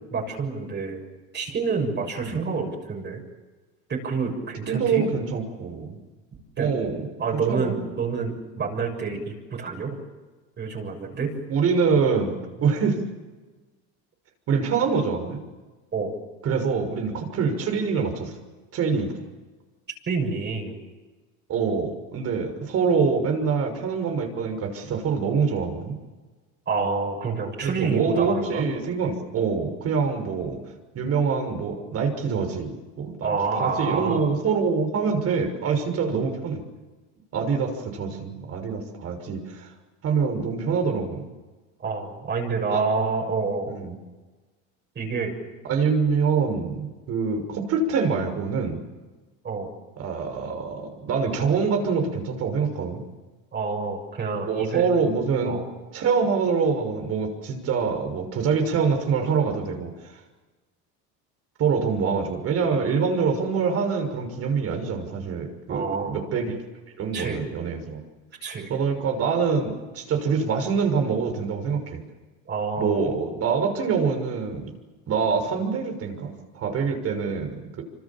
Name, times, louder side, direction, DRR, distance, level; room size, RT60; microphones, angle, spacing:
voice 1, 0.1-1.0 1.3-3.2 3.9-5.1 6.6-6.7 7.2-10.0 10.6-11.3 15.9-16.1 20.1-20.8 26.7-28.7 33.2-34.2 41.8-43.7 45.0-45.3 49.4-49.7 53.5-54.9 55.4-55.7 65.7-66.2 67.1-67.4 68.4-68.7 72.5-73.0, right 4 dB, 35° right, 1 dB, 6.9 m, -28 dB
voice 2, 4.7-6.0 6.6-7.1 7.5-7.8 11.5-13.0 14.5-15.4 16.4-18.3 18.7-19.1 21.5-26.0 27.6-30.6 30.9-33.3 33.6-36.6 37.3-39.7 40.0-41.3 42.7-42.8 43.7-43.9 45.6-48.8 50.0-53.0 54.5-55.6 55.9-59.9 61.6-66.6 67.0-68.0 68.7-72.0 72.8-74.7 75.1-77.8, right 5 dB, 50° right, 5 dB, 6.3 m, -25 dB
26.0 x 26.0 x 7.4 m, 1.3 s
supercardioid pair, 115°, 31 cm